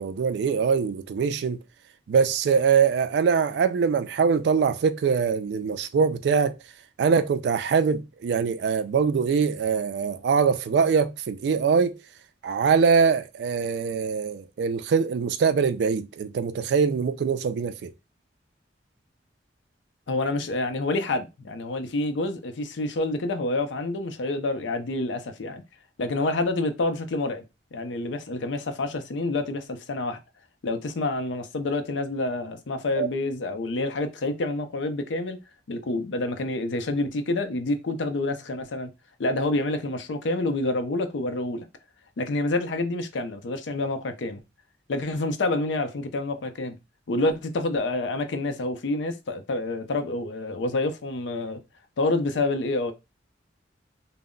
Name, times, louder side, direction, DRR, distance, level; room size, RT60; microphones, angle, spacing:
voice 1, 0.0-1.6 2.1-6.5 7.0-12.0 12.4-17.9 33.0-33.1, right 6 dB, 65° right, 0.3 m, -23 dB
voice 2, 20.1-25.6 26.0-27.4 27.7-30.2 30.6-35.4 35.7-38.9 39.2-41.6 42.2-44.4 44.9-46.8 47.1-51.6 52.0-52.9, left 2 dB, 85° left, 0.5 m, -28 dB
2.1 x 2.0 x 3.6 m
head